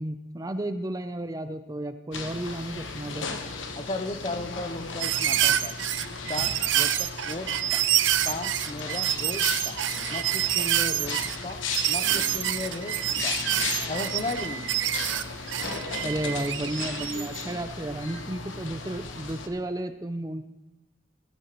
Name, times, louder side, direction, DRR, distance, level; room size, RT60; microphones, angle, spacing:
voice 1, 0.0-3.3 15.1-15.2 16.0-20.5, right 1 dB, 20° right, 9 dB, 0.5 m, -33 dB
sound 1, 2.1-19.5, left 4 dB, 85° left, 1.1 m, -36 dB
voice 2, 3.7-5.7 6.3-7.8 8.2-9.8 10.1-11.6 11.9-13.0 13.2-13.4 13.9-14.7, left 2 dB, 30° left, 10 dB, 0.6 m, -35 dB
sound 2, 5.0-17.4 18.1-18.2, right 12 dB, 80° right, 0.5 m, -27 dB
19.5 x 13.0 x 3.0 m, 1.0 s
head